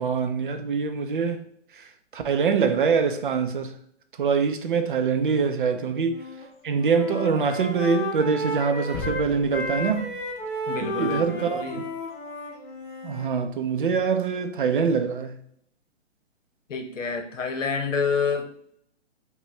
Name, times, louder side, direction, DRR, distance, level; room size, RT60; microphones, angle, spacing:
voice 1, 0.0-1.4 1.7-3.7 4.2-6.2 6.6-10.1 10.8-11.7 13.0-15.4, right 5 dB, 45° right, 0.4 m, -24 dB
Wind instrument woodwind instrument, 6.0-6.5 6.8-13.3, left 1 dB, 45° left, 1.3 m, -33 dB
sound 1, 8.9-10.9 11.3-11.4, left 6 dB, 20° left, 0.5 m, -39 dB
voice 2, 10.7-11.8 16.7-18.5, left 5 dB, 75° left, 1.0 m, -28 dB
5.8 x 2.2 x 3.1 m
hypercardioid pair, 150°, 38 cm